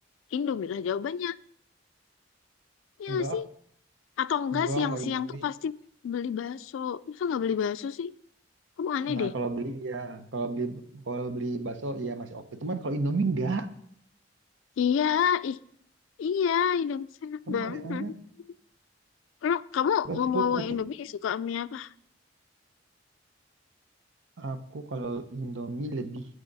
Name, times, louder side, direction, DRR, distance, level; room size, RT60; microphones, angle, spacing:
voice 1, 0.3-1.3 3.0-3.5 4.2-5.7 6.0-8.1 8.8-9.3 14.8-15.6 16.2-18.1 19.4-21.9, left 7 dB, 90° left, 13 dB, 0.3 m, -29 dB
voice 2, 3.1-3.4 4.5-5.5 9.1-13.7 17.5-18.1 20.1-20.8 24.4-26.3, right 3 dB, 80° right, 10 dB, 0.8 m, -32 dB
11.5 x 7.7 x 4.0 m, 0.69 s
head